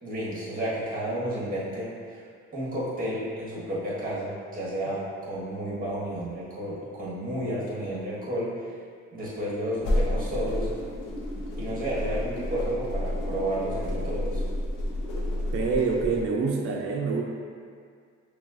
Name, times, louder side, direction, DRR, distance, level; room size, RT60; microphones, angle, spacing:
voice 1, 0.0-2.2 2.5-8.5 9.1-10.7 11.6-14.4, right 1 dB, 30° right, -7 dB, 1.4 m, -31 dB
sound 1, 9.8-16.2, left 1 dB, 80° left, 0.8 m, -30 dB
voice 2, 15.5-17.2, right 4 dB, 45° right, 0 dB, 0.5 m, -26 dB
5.6 x 2.4 x 2.5 m, 2.1 s
cardioid pair, 90°, 30 cm